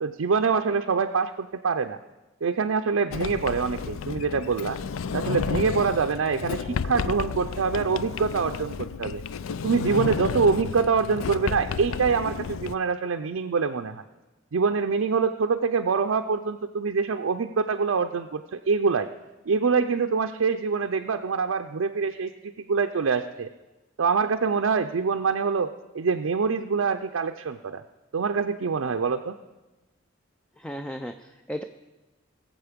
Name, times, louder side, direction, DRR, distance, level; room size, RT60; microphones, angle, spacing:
voice 1, 0.0-2.0 2.4-4.8 5.1-9.2 9.6-14.0 14.5-19.1 19.5-23.5 24.0-27.8 28.1-29.4, right 5 dB, 80° right, 5 dB, 0.5 m, -25 dB
Sliding door, 3.1-12.7, left 6 dB, 80° left, 0.4 m, -32 dB
voice 2, 30.6-31.6, equal, 5° left, 7 dB, 0.4 m, -35 dB
21.0 x 7.5 x 5.1 m, 1.1 s
head